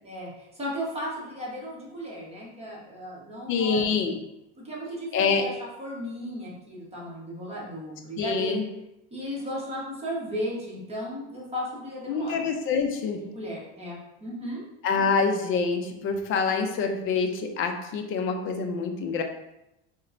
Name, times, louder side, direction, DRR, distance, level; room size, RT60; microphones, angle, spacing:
voice 1, 0.0-4.1 4.5-8.6 9.1-12.4 13.2-14.6, equal, 20° right, -5 dB, 1.0 m, -35 dB
voice 2, 3.5-4.1 5.1-5.4 8.2-8.6 12.1-13.2 14.8-19.2, left 5 dB, 40° left, 5 dB, 0.5 m, -26 dB
4.0 x 2.2 x 2.5 m, 0.87 s
supercardioid pair, 110°, 31 cm